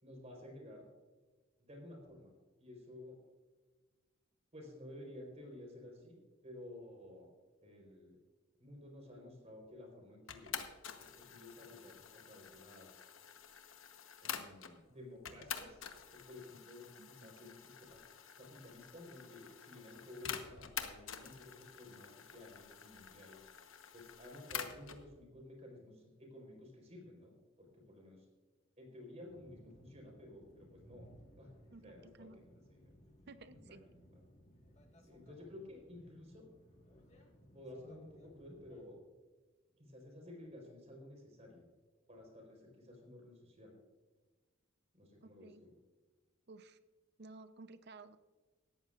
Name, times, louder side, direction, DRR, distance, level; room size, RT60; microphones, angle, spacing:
voice 1, 0.0-0.8 1.6-2.3 2.6-3.2 4.5-7.3 7.6-8.2 8.6-10.6 11.0-13.1 14.2-18.0 18.4-23.5 23.9-28.3 28.8-31.1 31.4-31.5 31.8-32.3 32.8-33.0 33.7-33.8 35.0-36.4 37.5-39.0 39.8-41.6 42.1-43.7 44.9-45.7, left 1 dB, 35° right, 1 dB, 4.2 m, -53 dB
sound 1, 10.3-14.8 15.3-25.0, left 8 dB, 80° left, 1.1 m, -48 dB
voice 2, 17.0-17.5 31.7-32.4 33.3-33.8 45.2-45.6 46.5-46.8 47.2-48.2, right 3 dB, 55° right, 11 dB, 0.7 m, -55 dB
sound 2, 29.2-38.9, equal, 35° left, 1.7 m, -62 dB
18.0 x 13.5 x 2.5 m, 1.3 s
head